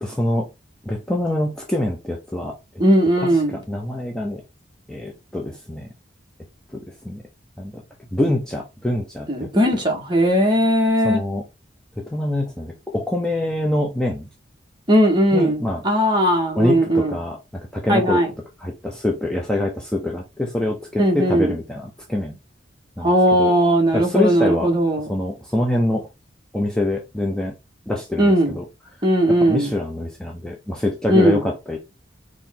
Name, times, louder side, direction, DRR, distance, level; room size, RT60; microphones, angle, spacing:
voice 1, 0.0-0.5 0.8-2.5 3.2-3.4 3.7-4.4 4.9-5.9 6.7-7.2 7.6-7.8 8.1-9.5 11.0-11.4 12.0-14.3 15.3-15.8 16.6-18.2 18.6-22.4 23.0-23.5 23.9-24.7 25.0-26.1 26.5-27.5 27.9-28.6 29.3-31.8, left 1 dB, 5° left, 0.7 m, -25 dB
voice 2, 2.8-3.6 9.3-11.2 14.9-17.1 17.9-18.3 21.0-21.5 23.0-25.1 28.2-28.6 29.0-29.7 31.1-31.4, equal, 25° right, 1.4 m, -18 dB
4.5 x 3.2 x 3.7 m
head